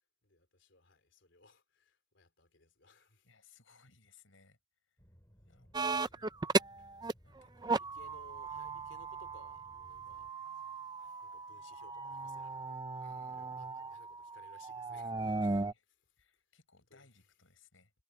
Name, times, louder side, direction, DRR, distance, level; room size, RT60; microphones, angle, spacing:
voice 1, 0.2-3.3 5.3-5.6 6.4-6.9 7.7-13.0 13.3-15.7 16.9-17.3, left 2 dB, 65° left, 3.8 m, -63 dB
voice 2, 3.2-5.1 5.5-6.3 7.2-7.7 13.0-13.5 15.1-15.8 16.2-17.9, left 4 dB, 80° left, 5.8 m, -65 dB
sound 1, 5.0-10.3, equal, 15° left, 5.4 m, -63 dB
sound 2, 5.7-7.1 7.4-15.7, right 3 dB, 20° right, 0.5 m, -37 dB
head